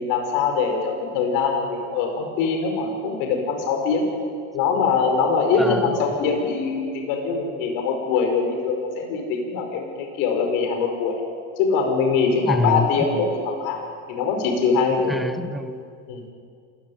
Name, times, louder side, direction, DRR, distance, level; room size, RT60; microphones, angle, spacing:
voice 1, 0.0-4.0 4.5-11.2 11.6-13.8 14.1-15.1 16.1-16.2, left 5 dB, 65° left, 3 dB, 5.3 m, -23 dB
voice 2, 5.6-6.0 12.4-12.9 15.1-15.8, left 1 dB, ahead, 9 dB, 1.3 m, -25 dB
27.0 x 16.5 x 9.6 m, 2.3 s
supercardioid pair, 115°, 38 cm